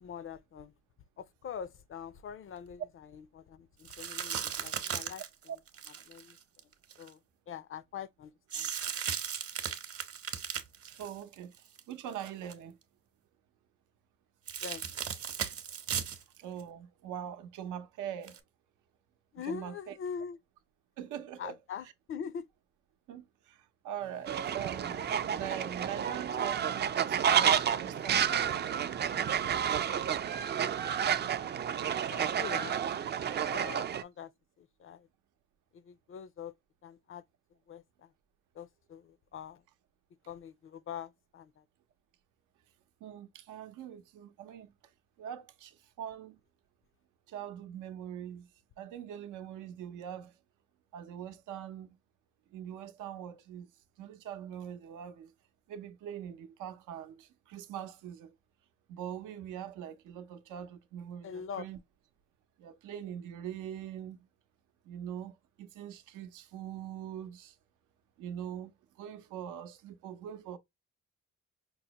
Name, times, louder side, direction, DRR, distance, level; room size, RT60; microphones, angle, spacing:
voice 1, 0.0-0.7 1.2-5.2 6.0-6.4 7.0-7.2 7.5-8.7 9.0-9.2 14.6-15.0 15.4-15.5 19.3-20.4 21.4-22.5 31.7-32.8 33.5-34.3 34.6-35.1 35.7-36.5 36.8-37.2 37.7-38.1 38.5-39.6 40.3-41.6 61.2-61.6, left 7 dB, 45° left, 0.5 m, -43 dB
sound 1, 3.9-7.1 8.5-11.8 12.1-12.5 14.5-16.2 16.6-16.7 18.3-18.4, right 8 dB, 50° right, 0.9 m, -37 dB
voice 2, 10.9-11.5 11.9-12.8 16.4-18.4 19.4-19.9 21.0-21.6 23.1-29.3 43.0-44.7 45.2-46.4 47.3-48.5 48.8-50.4 50.9-52.0 52.5-53.7 54.0-55.3 55.7-58.3 58.9-61.8 62.6-64.2 64.8-67.6 68.2-68.7 69.0-70.6, right 9 dB, 85° right, 0.7 m, -43 dB
sound 2, 24.0-30.1, left 6 dB, 80° left, 1.3 m, -58 dB
Fowl, 24.3-34.0, right 8 dB, 35° right, 0.4 m, -30 dB
5.4 x 2.1 x 2.8 m
cardioid pair, 90°, 30 cm